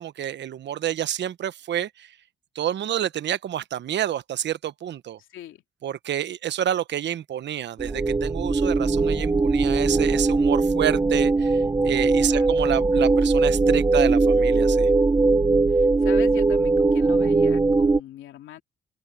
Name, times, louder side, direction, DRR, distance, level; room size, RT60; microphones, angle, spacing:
voice 1, 0.0-2.1 2.5-5.2 5.8-14.9, right 11 dB, 65° right, 1.0 m, -28 dB
voice 2, 5.2-5.6 12.3-12.6 15.7-18.6, left 12 dB, 80° left, 2.8 m, -42 dB
sound 1, 7.8-18.0, right 3 dB, 15° right, 0.9 m, -20 dB
open air
cardioid pair, 90°, 20 cm